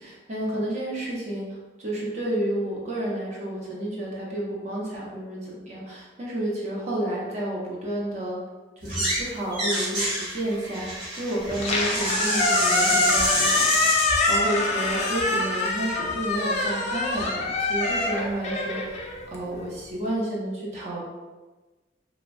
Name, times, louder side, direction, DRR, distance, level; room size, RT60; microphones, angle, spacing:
voice 1, 0.0-8.4 8.8-10.9 11.1-19.0 19.3-21.0, right 1 dB, 35° right, -5 dB, 0.7 m, -31 dB
sound 1, 8.8-9.2 9.5-14.1, right 1 dB, 60° right, 1.1 m, -27 dB
Squeak, 11.5-19.7, left 3 dB, 35° left, 0.3 m, -25 dB
3.0 x 2.1 x 2.5 m, 1.2 s
head